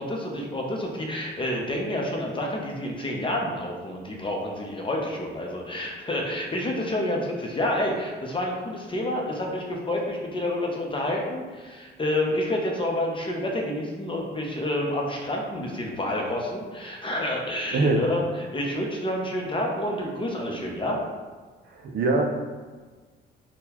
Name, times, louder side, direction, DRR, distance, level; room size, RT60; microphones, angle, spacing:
voice 1, 0.0-18.2 18.5-21.0, left 1 dB, 25° left, -1 dB, 0.6 m, -29 dB
voice 2, 17.7-18.0 21.7-22.2, right 2 dB, 55° right, 1 dB, 0.5 m, -23 dB
3.7 x 2.2 x 2.9 m, 1.4 s
cardioid pair, 90°, 20 cm